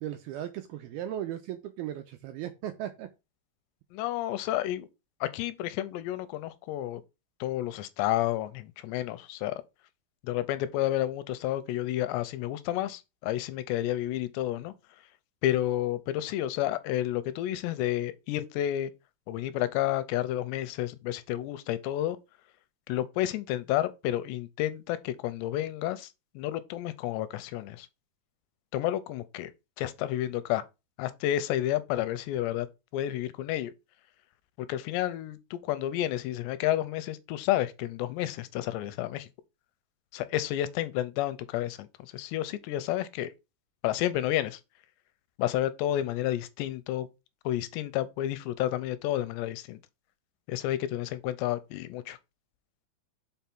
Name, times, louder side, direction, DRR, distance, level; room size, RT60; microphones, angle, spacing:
voice 1, 0.0-3.1, right 11 dB, 90° right, 2.2 m, -37 dB
voice 2, 3.9-4.9 5.2-7.0 7.4-9.6 10.2-14.7 15.4-18.9 19.3-22.2 22.9-26.1 26.4-27.9 28.7-29.5 29.8-30.6 31.0-32.7 32.9-33.7 34.6-39.3 40.1-41.9 42.1-43.3 43.8-44.6 45.4-47.1 47.5-49.8 50.5-52.2, left 13 dB, 85° left, 2.9 m, -30 dB
5.7 x 5.5 x 6.0 m
omnidirectional pair, 5.0 m